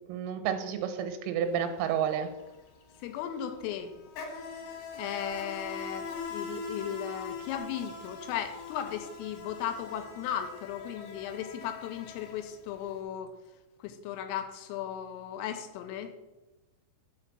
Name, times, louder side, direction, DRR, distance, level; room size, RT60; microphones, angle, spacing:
voice 1, 0.0-2.3, right 8 dB, 90° right, 8 dB, 3.6 m, -30 dB
Insect, 1.5-1.6 1.9-12.9, left 4 dB, 65° left, 2.8 m, -42 dB
voice 2, 3.0-3.9 4.9-13.3 13.8-16.1, left 10 dB, 85° left, 8 dB, 3.2 m, -36 dB
5.9 x 5.8 x 5.9 m, 1.1 s
omnidirectional pair, 6.0 m